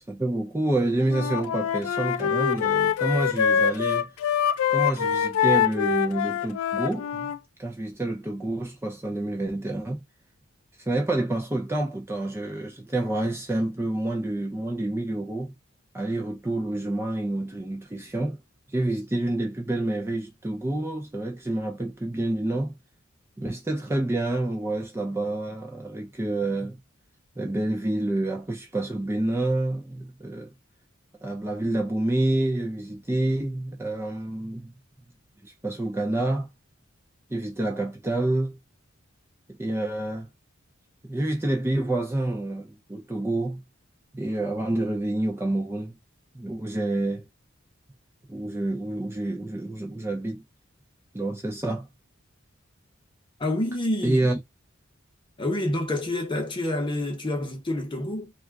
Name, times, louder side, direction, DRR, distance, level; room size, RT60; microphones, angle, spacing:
voice 1, 0.1-4.1 4.7-7.3 7.6-10.0 10.8-15.5 15.9-18.4 18.7-22.7 23.4-26.8 27.4-30.5 31.2-34.7 35.4-36.5 37.3-38.6 39.5-40.3 41.0-43.6 44.1-46.0 46.3-47.2 48.3-50.4 51.1-51.9 54.0-54.4, right 2 dB, 10° right, 0.5 m, -28 dB
Wind instrument woodwind instrument, 1.1-7.4, left 8 dB, 85° left, 0.3 m, -24 dB
voice 2, 53.4-54.3 55.4-58.3, left 1 dB, 25° left, 0.8 m, -28 dB
2.4 x 2.1 x 3.4 m
head